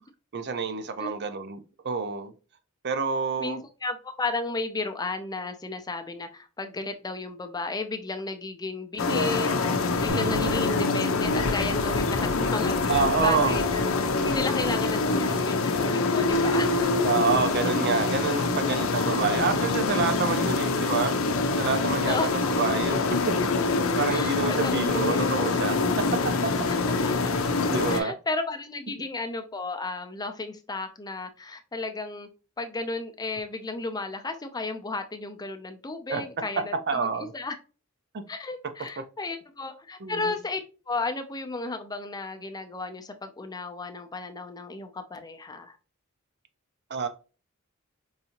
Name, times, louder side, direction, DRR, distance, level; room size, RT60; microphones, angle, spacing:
voice 1, 0.3-2.3 2.8-3.6 12.9-13.6 17.0-21.1 21.6-26.5 26.9-27.0 27.7-28.1 36.1-36.2 36.9-37.3 38.1-38.2 39.0-39.1 40.0-40.4 46.9-47.1, right 5 dB, 55° right, 0.6 m, -28 dB
voice 2, 3.4-17.1 22.1-22.3 24.1-25.3 26.7-26.8 27.0-27.1 27.9-32.3 32.6-37.1 37.3-37.6 38.3-40.6 40.9-45.8, left 3 dB, 20° left, 0.5 m, -33 dB
sound 1, 9.0-28.0, left 3 dB, 75° left, 0.6 m, -25 dB
Bass guitar, 10.1-16.3, right 7 dB, 35° right, 1.0 m, -42 dB
4.8 x 2.7 x 2.8 m
head